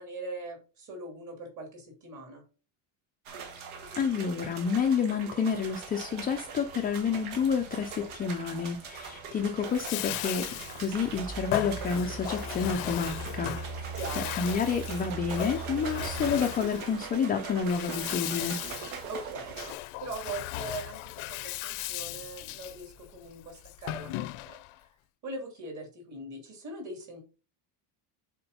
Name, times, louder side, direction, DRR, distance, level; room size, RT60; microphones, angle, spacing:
voice 1, 0.0-2.4 14.0-14.3 19.1-24.6 25.2-27.2, right 2 dB, 35° right, 2 dB, 2.9 m, -41 dB
sound 1, 3.3-19.7, right 5 dB, 80° right, 1.8 m, -41 dB
voice 2, 4.0-18.6, left 6 dB, 20° left, 3 dB, 0.3 m, -29 dB
sound 2, 5.5-16.3, right 4 dB, 65° right, 4.3 m, -42 dB
Bathtub (filling or washing), 9.6-24.8, left 16 dB, 75° left, 0.6 m, -37 dB
6.9 x 4.4 x 5.3 m, 0.36 s
cardioid pair, 180°, 49 cm